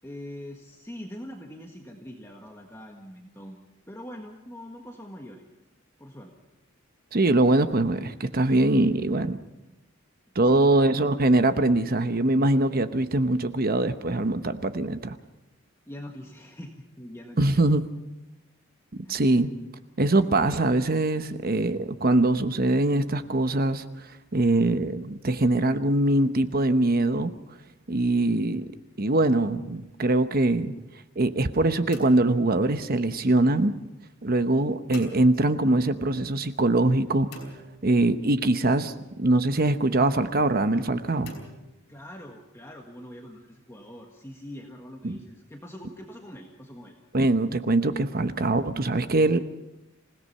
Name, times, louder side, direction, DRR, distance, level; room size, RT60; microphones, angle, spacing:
voice 1, 0.0-3.6 3.9-5.4 6.0-6.3 10.4-10.8 15.9-17.7 19.0-19.4 41.9-47.0, equal, 15° left, 1 dB, 1.6 m, -43 dB
voice 2, 7.1-9.4 10.3-15.2 17.4-17.8 19.1-19.5 20.0-23.8 24.3-27.3 27.9-28.7 29.0-30.7 31.2-33.7 34.2-37.4 37.8-38.9 39.2-41.3 45.0-45.2 47.1-49.4, right 2 dB, 45° right, 10 dB, 1.0 m, -23 dB
sound 1, 31.9-33.2 34.9-35.9 37.3-38.5 41.3-42.5, equal, 55° left, 5.1 m, -45 dB
27.0 x 17.0 x 5.6 m, 0.99 s
head